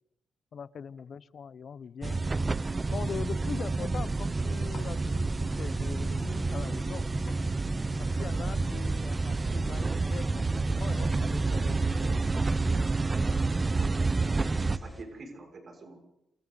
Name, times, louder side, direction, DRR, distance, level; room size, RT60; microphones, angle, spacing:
voice 1, 0.5-2.2 2.9-7.1 8.0-12.2, left 7 dB, 55° left, 17 dB, 0.9 m, -42 dB
sound 1, 2.0-14.8, right 3 dB, 25° right, 0.8 m, -29 dB
sound 2, 4.7-5.2 7.3-7.9, left 6 dB, 75° left, 3.3 m, -52 dB
sound 3, 5.0-15.0, left 2 dB, ahead, 4.5 m, -49 dB
voice 2, 13.4-13.9 14.7-16.0, right 3 dB, 50° right, 2 dB, 6.5 m, -47 dB
28.5 x 28.0 x 4.1 m, 0.85 s
cardioid pair, 105°, 0 cm